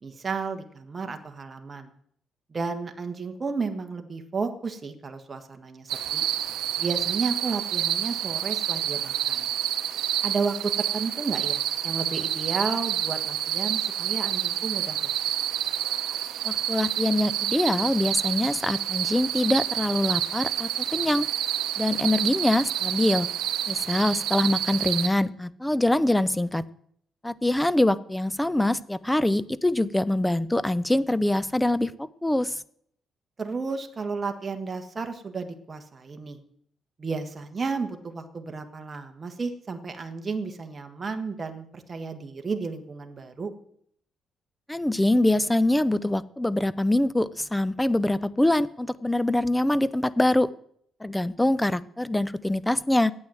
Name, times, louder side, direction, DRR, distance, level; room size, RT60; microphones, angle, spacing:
voice 1, 0.0-1.9 2.5-6.2 6.8-9.5 10.2-14.9 15.3-15.4 22.0-22.1 33.4-36.4 37.0-43.5 51.1-51.5, right 4 dB, 30° right, 6 dB, 1.5 m, -32 dB
sound 1, 5.9-25.1, right 11 dB, 85° right, 0.7 m, -28 dB
voice 2, 16.4-21.3 21.8-23.3 23.7-26.7 27.2-32.6 44.7-50.5 51.0-53.1, left 1 dB, 10° left, 18 dB, 0.6 m, -24 dB
10.5 x 8.9 x 7.7 m, 0.66 s
cardioid pair, 90°, 0 cm